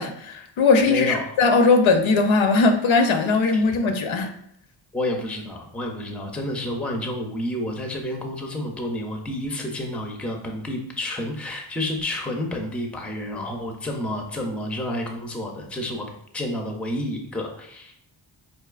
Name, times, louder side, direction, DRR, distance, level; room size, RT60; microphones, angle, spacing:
voice 1, 0.0-4.3, left 4 dB, 80° left, 5 dB, 0.6 m, -19 dB
voice 2, 0.8-1.3 3.5-3.9 4.9-17.9, left 1 dB, 5° left, 2 dB, 0.4 m, -30 dB
4.5 x 2.6 x 2.4 m, 0.71 s
wide cardioid pair, 120°, 47 cm